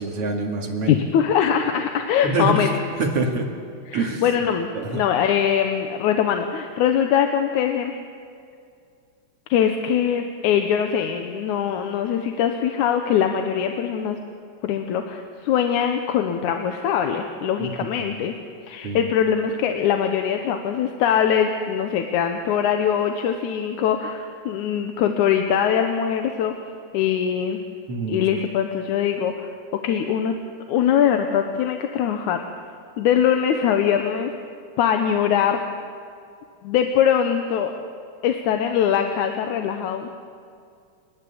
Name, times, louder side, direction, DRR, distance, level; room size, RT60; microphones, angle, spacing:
voice 1, 0.0-1.0 2.2-2.7 3.0-3.5 3.9-4.2 4.7-5.0 17.6-18.2 18.8-19.1 27.9-28.2, right 2 dB, 50° right, 1 dB, 3.1 m, -26 dB
voice 2, 0.9-2.7 3.9-8.0 9.5-14.2 14.6-18.3 18.6-26.5 26.9-27.6 28.1-30.4 30.7-32.4 33.0-34.3 34.8-35.6 36.6-37.7 38.2-40.1, left 8 dB, 80° left, 5 dB, 2.3 m, -22 dB
30.0 x 10.5 x 8.6 m, 2.3 s
omnidirectional pair, 3.4 m